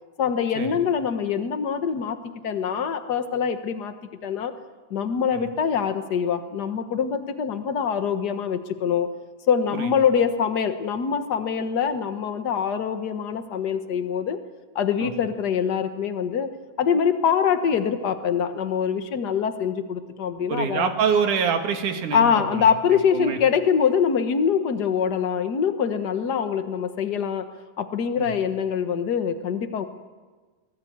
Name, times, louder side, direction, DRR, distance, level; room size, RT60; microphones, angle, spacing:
voice 1, 0.2-2.2 2.4-3.9 4.2-4.5 4.9-9.1 9.5-14.4 14.7-16.5 16.8-20.9 22.1-27.4 27.8-29.8, left 7 dB, 55° left, 8 dB, 1.2 m, -24 dB
voice 2, 20.5-23.4 28.2-28.3, right 6 dB, 75° right, 6 dB, 3.2 m, -26 dB
23.0 x 18.5 x 9.5 m, 1.4 s
omnidirectional pair, 3.6 m